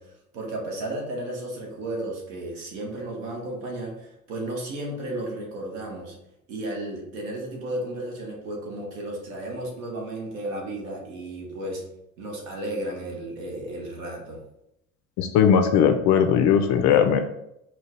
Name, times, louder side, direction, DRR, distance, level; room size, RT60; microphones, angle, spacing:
voice 1, 0.0-6.2 6.5-11.8 12.2-14.4, right 1 dB, 60° right, 0 dB, 1.4 m, -33 dB
voice 2, 15.2-17.2, left 8 dB, 40° left, 7 dB, 0.5 m, -19 dB
4.5 x 2.3 x 4.4 m, 0.80 s
figure-of-eight pair, 65°, 42 cm